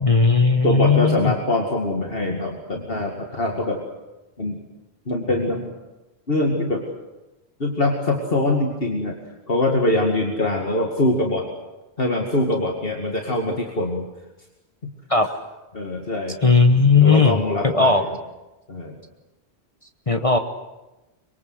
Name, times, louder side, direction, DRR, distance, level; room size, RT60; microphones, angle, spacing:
voice 1, 0.0-1.3 15.1-15.3 16.4-18.0 20.1-20.4, left 4 dB, 35° left, 6 dB, 1.2 m, -17 dB
voice 2, 0.6-3.8 4.4-4.6 5.1-5.8 6.3-6.9 7.6-9.2 9.5-11.5 12.0-14.1 15.7-16.5 17.0-18.1 18.7-19.0, left 2 dB, 60° left, 1 dB, 2.5 m, -23 dB
24.5 x 23.0 x 7.9 m, 1.0 s
omnidirectional pair, 1.1 m